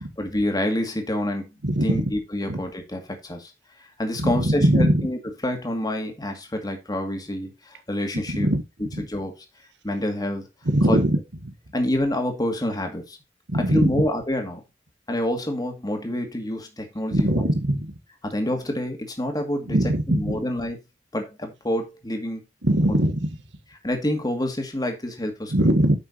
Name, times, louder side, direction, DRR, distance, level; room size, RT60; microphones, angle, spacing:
voice 1, 0.2-1.5 1.8-3.5 4.0-8.5 9.1-9.3 9.8-10.4 10.9-11.0 11.7-13.2 13.7-14.6 15.1-17.4 18.2-19.8 20.1-20.8 21.1-22.4 22.9-23.0 23.8-25.5, left 1 dB, 25° left, 2.2 m, -27 dB
voice 2, 1.6-2.1 2.5-2.6 4.2-5.1 8.3-8.6 8.9-9.0 10.6-11.2 11.4-11.5 13.5-14.0 17.1-17.9 19.7-20.4 22.6-23.3 25.5-26.0, right 1 dB, 80° right, 1.7 m, -21 dB
9.7 x 6.1 x 4.2 m
head